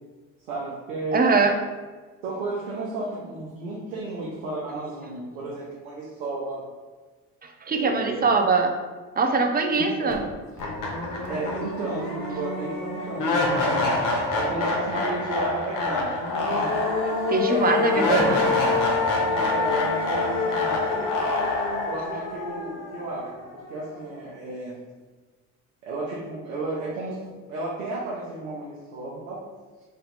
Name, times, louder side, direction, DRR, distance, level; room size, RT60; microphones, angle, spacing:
voice 1, 0.5-1.3 2.2-6.6 7.7-8.3 9.7-10.3 11.3-16.7 17.4-18.5 19.1-21.2 21.9-24.8 25.8-29.4, right 2 dB, 85° right, -6 dB, 0.9 m, -33 dB
voice 2, 1.1-1.5 7.7-8.7 9.2-10.2 17.3-18.4, right 4 dB, 25° right, 4 dB, 0.5 m, -22 dB
sound 1, 10.1-10.2 10.6-23.6, left 3 dB, 50° left, 1.0 m, -26 dB
3.4 x 2.8 x 4.0 m, 1.3 s
hypercardioid pair, 65°, 39 cm